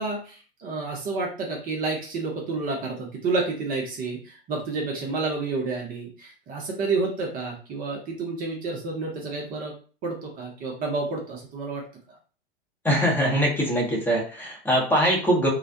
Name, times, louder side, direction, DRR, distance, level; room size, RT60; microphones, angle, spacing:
voice 1, 0.0-9.7 10.0-11.8, right 3 dB, 30° right, 0 dB, 0.7 m, -30 dB
voice 2, 12.8-15.5, equal, 5° left, -3 dB, 0.7 m, -22 dB
2.3 x 2.1 x 2.6 m, 0.39 s
figure-of-eight pair, 95°, 31 cm